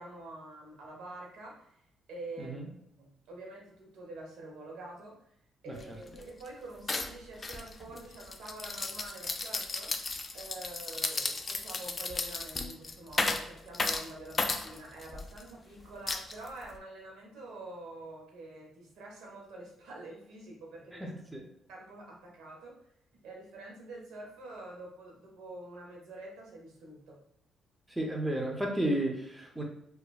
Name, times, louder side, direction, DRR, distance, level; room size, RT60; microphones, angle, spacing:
voice 1, 0.0-1.8 2.1-2.6 3.0-5.3 5.6-21.1 21.7-22.8 23.2-27.2, right 2 dB, 90° right, -1 dB, 0.8 m, -46 dB
sound 1, 5.8-5.9 6.1-6.5 6.9-15.4 16.1-16.8, left 3 dB, 30° left, 0.3 m, -34 dB
voice 2, 21.0-21.4 27.9-29.6, right 1 dB, 10° right, 0 dB, 0.6 m, -32 dB
3.0 x 2.3 x 2.3 m, 0.74 s
cardioid pair, 90°, 0 cm